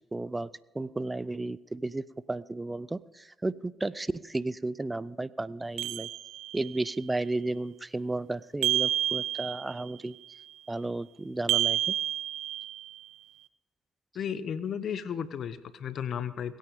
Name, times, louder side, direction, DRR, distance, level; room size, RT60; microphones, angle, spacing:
voice 1, 0.1-0.5 0.7-2.0 2.3-6.1 6.5-10.1 10.7-12.0, right 2 dB, 20° right, 20 dB, 0.5 m, -33 dB
sound 1, 5.8-6.8 8.6-9.9 11.5-13.0, right 12 dB, 75° right, 0.6 m, -29 dB
voice 2, 14.1-16.6, left 8 dB, 60° left, 14 dB, 1.0 m, -34 dB
22.0 x 9.2 x 5.2 m, 1.0 s
hypercardioid pair, 50°, 0 cm